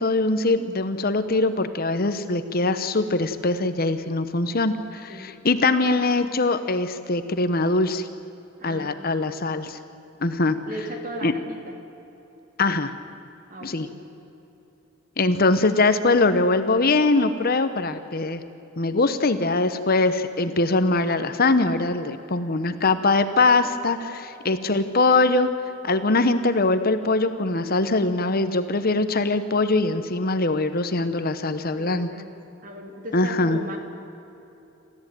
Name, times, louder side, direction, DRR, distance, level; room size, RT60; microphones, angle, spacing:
voice 1, 0.0-8.1 8.6-9.8 10.2-10.6 11.2-11.3 12.6-12.9 13.6-13.9 15.2-18.4 18.8-25.5 25.8-32.1 33.1-33.6, left 3 dB, 45° left, 10 dB, 1.0 m, -22 dB
voice 2, 8.6-9.3 10.7-11.8 13.5-14.0 31.7-32.4 32.6-33.8, right 1 dB, 40° right, 3 dB, 3.0 m, -37 dB
28.0 x 14.0 x 9.2 m, 3.0 s
head